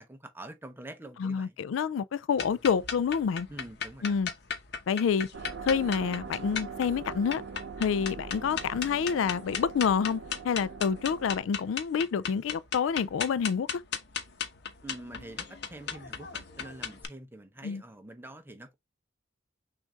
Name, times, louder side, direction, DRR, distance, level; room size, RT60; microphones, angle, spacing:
voice 1, 0.0-1.6 3.5-4.2 14.8-18.7, right 1 dB, 10° right, 0.7 m, -46 dB
voice 2, 1.2-3.5 4.0-4.3 4.9-5.3 5.6-7.4 7.8-13.8 17.6-17.8, left 6 dB, 85° left, 0.3 m, -28 dB
sound 1, 2.4-17.0, left 7 dB, 60° left, 0.9 m, -37 dB
sound 2, 5.3-11.4, right 5 dB, 70° right, 0.7 m, -42 dB
6.2 x 2.5 x 3.3 m
head